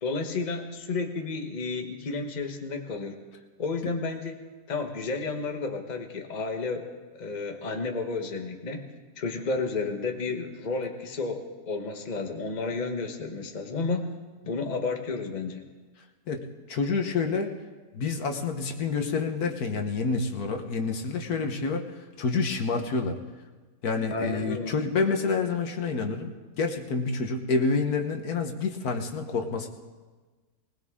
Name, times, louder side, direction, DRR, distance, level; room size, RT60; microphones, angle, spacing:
voice 1, 0.0-3.2 3.6-4.4 4.7-6.9 7.2-8.9 9.2-14.1 14.4-15.6 24.1-24.7, left 3 dB, 30° left, 4 dB, 1.2 m, -31 dB
voice 2, 16.3-17.5 17.9-21.8 22.2-23.2 23.8-26.3 26.6-29.7, left 4 dB, 70° left, 4 dB, 1.7 m, -28 dB
20.0 x 19.5 x 3.7 m, 1.3 s
omnidirectional pair, 1.7 m